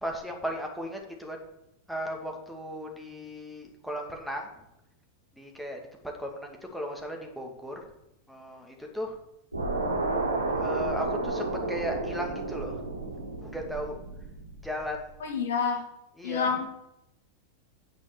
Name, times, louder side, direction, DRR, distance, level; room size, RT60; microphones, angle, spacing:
voice 1, 0.0-1.4 1.9-4.5 5.4-5.8 6.2-7.8 8.3-9.1 10.5-12.7 13.4-14.0 14.6-15.0 16.2-16.5, equal, ahead, 1 dB, 2.3 m, -36 dB
sound 1, 9.5-14.8, right 2 dB, 90° right, 4.3 m, -31 dB
voice 2, 15.2-15.8 16.2-16.7, left 6 dB, 60° left, 1 dB, 2.2 m, -28 dB
9.5 x 6.3 x 6.1 m, 0.86 s
figure-of-eight pair, 90°, 0 cm